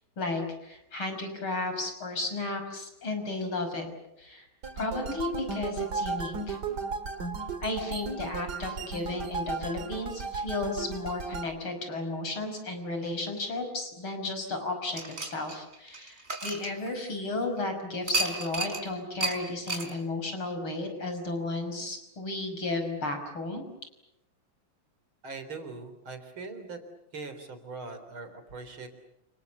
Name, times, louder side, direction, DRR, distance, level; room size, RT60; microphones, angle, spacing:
voice 1, 0.2-3.9 4.2-4.5 4.8-6.6 7.6-23.6, left 2 dB, 85° left, 6 dB, 6.6 m, -33 dB
sound 1, 4.6-11.5, right 4 dB, 55° right, 2.5 m, -35 dB
sound 2, 14.9-17.3 18.1-18.8 19.2-19.4 19.7-19.9, right 2 dB, 30° right, 4.5 m, -32 dB
voice 2, 25.2-26.8 27.1-28.9, right 4 dB, 75° right, 9 dB, 4.5 m, -41 dB
29.5 x 27.5 x 7.0 m, 0.86 s
omnidirectional pair, 2.3 m